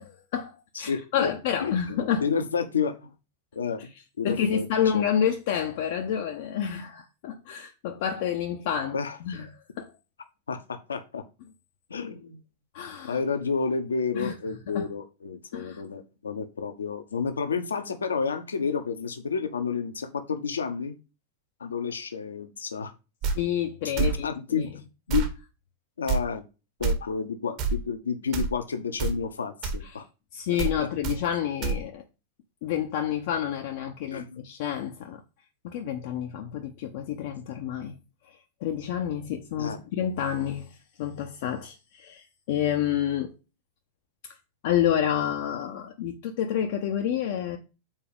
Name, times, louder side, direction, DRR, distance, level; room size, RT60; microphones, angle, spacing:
voice 1, 0.0-2.3 3.8-3.9 4.2-9.0 9.2-9.5 9.8-9.9 12.7-13.2 14.1-14.4 14.7-14.9 15.5-15.8 23.3-24.7 29.8-30.0 30.3-32.0 32.6-35.2 35.6-38.0 38.3-43.3 44.2-44.4 44.6-47.6, left 9 dB, 50° left, 0.9 m, -29 dB
voice 2, 0.7-1.3 1.6-3.1 3.5-3.9 4.2-4.7 4.9-5.0 8.9-9.4 10.5-11.2 11.9-12.4 13.0-21.0 21.6-22.9 24.0-24.7 25.1-25.3 26.0-26.4 26.8-30.0 30.5-30.9 34.1-34.4 39.6-39.8, left 5 dB, 70° left, 1.1 m, -30 dB
sound 1, 23.2-23.4 24.0-24.2 25.1-25.3 26.1-26.2 26.8-26.9 27.6-27.8 28.3-28.5 29.0-29.2 29.6-29.8 30.6-30.8 31.0-31.2 31.6-31.8, right 5 dB, 40° right, 1.7 m, -26 dB
7.4 x 4.7 x 5.0 m
figure-of-eight pair, 90°, 0 cm